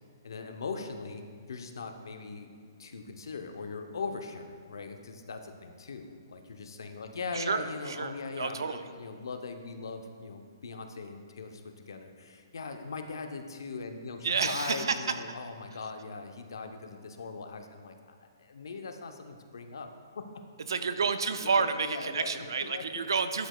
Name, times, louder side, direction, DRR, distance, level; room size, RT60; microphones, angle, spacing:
voice 1, 0.2-1.2 1.5-2.5 2.8-20.4 21.4-23.1 23.4-23.5, left 4 dB, 85° left, 6 dB, 0.6 m, -40 dB
voice 2, 7.3-8.8 14.2-15.0 20.7-23.5, right 5 dB, 90° right, 10 dB, 0.4 m, -30 dB
11.0 x 5.1 x 2.2 m, 2.1 s
hypercardioid pair, 165°, 2 cm